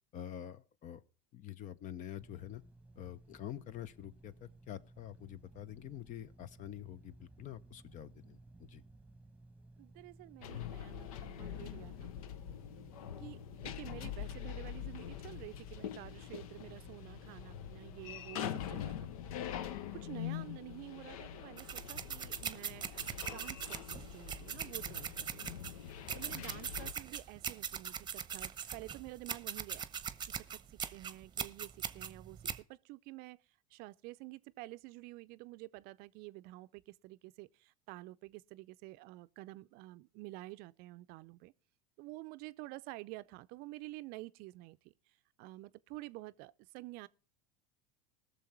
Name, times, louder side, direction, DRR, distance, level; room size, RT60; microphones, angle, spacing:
voice 1, 0.1-1.0 1.3-2.6 3.0-8.8 25.8-26.2, left 11 dB, 45° left, 0.8 m, -47 dB
sound 1, 2.2-19.4, right 2 dB, 10° right, 1.2 m, -59 dB
voice 2, 9.8-12.1 13.2-19.1 19.9-25.6 26.1-29.9 30.4-32.4 32.7-33.4 33.7-41.5 42.0-44.8 45.4-47.1, right 20 dB, 55° right, 0.5 m, -50 dB
sound 2, 10.4-26.9, left 10 dB, 80° left, 0.7 m, -44 dB
sound 3, 21.6-32.6, right 7 dB, 25° right, 0.8 m, -41 dB
19.5 x 6.8 x 4.4 m
hypercardioid pair, 90°, 18 cm